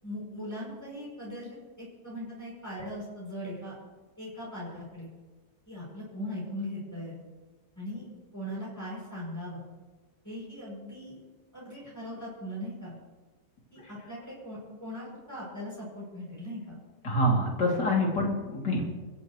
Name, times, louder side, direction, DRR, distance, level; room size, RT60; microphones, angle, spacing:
voice 1, 0.0-1.5 1.8-3.8 4.2-5.1 5.7-7.2 7.8-8.1 8.3-9.6 10.2-11.2 11.5-12.9 13.7-16.8, equal, 10° left, -7 dB, 7.5 m, -39 dB
voice 2, 17.0-18.9, left 1 dB, 85° left, -2 dB, 3.8 m, -26 dB
28.5 x 15.0 x 3.3 m, 1.3 s
omnidirectional pair, 1.8 m